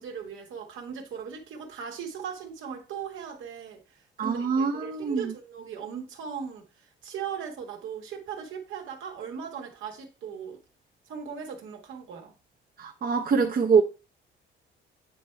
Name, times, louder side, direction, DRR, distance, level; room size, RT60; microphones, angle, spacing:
voice 1, 0.0-10.6 11.1-12.3, right 7 dB, 80° right, 1.5 m, -38 dB
voice 2, 4.2-5.3 12.8-13.8, right 5 dB, 50° right, 0.8 m, -24 dB
8.6 x 3.3 x 4.5 m
cardioid pair, 90°, 20 cm